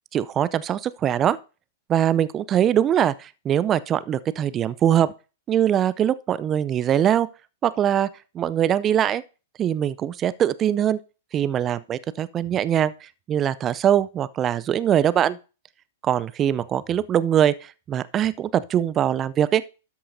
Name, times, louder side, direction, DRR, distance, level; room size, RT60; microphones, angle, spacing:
voice 1, 0.1-1.4 1.9-5.1 5.5-7.3 7.6-8.1 8.3-9.2 9.6-11.0 11.3-15.4 16.0-19.6, right 10 dB, 25° right, 0.5 m, -22 dB
12.5 x 8.4 x 2.7 m
figure-of-eight pair, 105°, 0 cm